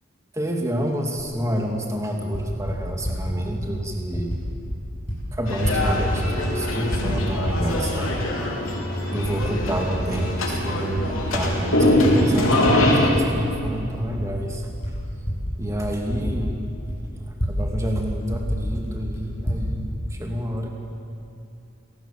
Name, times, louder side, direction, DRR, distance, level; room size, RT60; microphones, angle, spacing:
voice 1, 0.3-4.3 5.3-8.2 9.1-14.7 15.6-16.6 17.1-19.8 20.1-20.7, equal, 15° right, 1 dB, 2.3 m, -28 dB
Typing, 1.2-1.3 2.1-3.2 3.8-4.4 4.7-5.2 5.5-6.5 6.8-8.0 8.6-8.7 9.2-10.1 10.4-12.7 13.1-17.7 17.9-18.0 18.3-19.6, equal, 25° left, 7.1 m, -29 dB
sound 1, 5.5-13.1, left 1 dB, 90° left, 4.2 m, -23 dB
26.5 x 18.5 x 7.3 m, 2.7 s
head